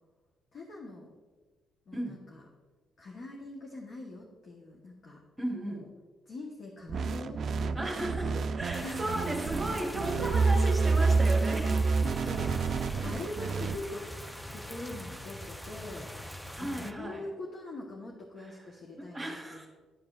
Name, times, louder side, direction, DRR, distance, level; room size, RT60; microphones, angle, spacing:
voice 1, 0.5-1.1 1.9-2.4 3.0-5.2 5.6-5.9 6.3-8.0 8.8-9.5 12.2-12.5 13.0-14.1 14.5-16.1 16.6-19.7, left 2 dB, 60° left, -2 dB, 1.1 m, -43 dB
voice 2, 1.9-2.2 5.4-5.9 7.7-11.9 16.5-17.3 18.5-18.6 19.0-19.7, right 1 dB, 10° right, -2 dB, 1.2 m, -35 dB
sound 1, 6.9-13.8, right 4 dB, 55° right, 0.3 m, -28 dB
sound 2, 8.7-16.9, left 1 dB, 5° left, 0.5 m, -43 dB
11.5 x 4.8 x 2.4 m, 1.3 s
cardioid pair, 90°, 0 cm